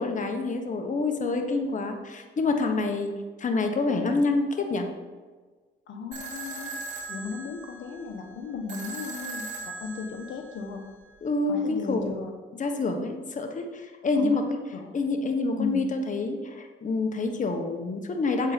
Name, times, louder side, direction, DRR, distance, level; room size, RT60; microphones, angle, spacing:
voice 1, 0.0-3.1 3.4-4.9 11.2-12.1 12.6-14.6 14.9-18.5, left 3 dB, 40° left, 4 dB, 1.4 m, -27 dB
voice 2, 5.9-6.8 7.1-10.8 11.5-12.3 14.1-14.4 14.7-14.9 15.6-15.9, left 5 dB, 70° left, 4 dB, 1.2 m, -36 dB
Old style phone ringer, 6.1-11.1, right 3 dB, 40° right, 3.4 m, -39 dB
8.1 x 8.0 x 5.2 m, 1.4 s
cardioid pair, 90°, 20 cm